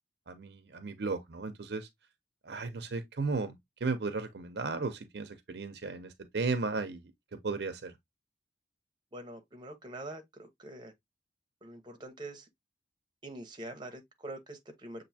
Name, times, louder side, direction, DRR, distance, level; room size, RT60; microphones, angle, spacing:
voice 1, 0.3-1.9 2.4-7.1 7.4-7.9, right 3 dB, 65° right, 0.7 m, -35 dB
voice 2, 9.1-10.9 11.6-12.5 13.2-15.1, right 1 dB, 25° right, 1.0 m, -44 dB
7.0 x 2.7 x 2.7 m
head